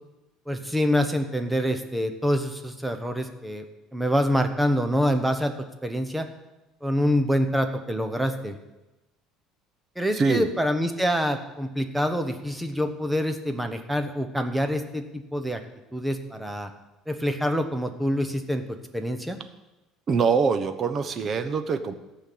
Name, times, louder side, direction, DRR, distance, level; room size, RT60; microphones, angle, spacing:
voice 1, 0.5-3.6 3.9-5.5 5.8-6.3 6.8-8.6 10.0-15.6 15.9-16.7 17.1-19.4, equal, 5° right, 7 dB, 1.0 m, -26 dB
voice 2, 10.1-10.5 20.1-21.9, right 5 dB, 30° right, 10 dB, 1.0 m, -23 dB
14.0 x 5.8 x 8.6 m, 1.0 s
cardioid pair, 150°, 0 cm